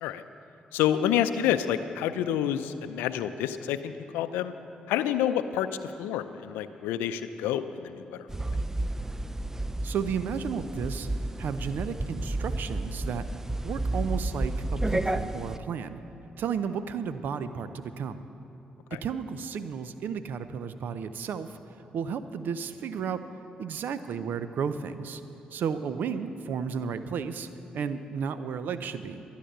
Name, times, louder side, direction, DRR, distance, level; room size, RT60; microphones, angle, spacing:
voice 1, 0.7-4.5 4.9-5.7 6.0-8.3 18.9-19.0, left 10 dB, 85° left, 11 dB, 0.5 m, -28 dB
sound 1, 8.3-15.6, right 1 dB, 15° right, 0.5 m, -31 dB
voice 2, 9.8-11.1 11.4-13.3 13.6-16.0 16.4-18.2 18.9-21.6 21.9-23.2 23.6-25.2 25.5-27.5 27.7-29.2, right 6 dB, 70° right, 12 dB, 0.6 m, -33 dB
12.5 x 10.0 x 6.7 m, 2.9 s
hypercardioid pair, 45°, 3 cm